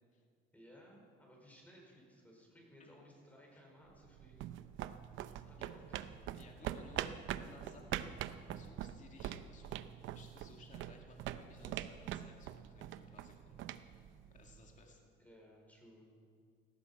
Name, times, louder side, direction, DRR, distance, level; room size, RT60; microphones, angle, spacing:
voice 1, 0.5-4.5 5.4-6.3 15.2-16.1, equal, 5° left, -1 dB, 4.9 m, -60 dB
sound 1, 3.9-14.7, right 11 dB, 70° right, 0.7 m, -44 dB
voice 2, 5.3-5.7 6.3-8.2 8.5-9.8 10.1-13.6 14.3-15.1, left 3 dB, 40° left, 1 dB, 2.3 m, -60 dB
18.0 x 14.0 x 5.5 m, 2.2 s
cardioid pair, 120°, 21 cm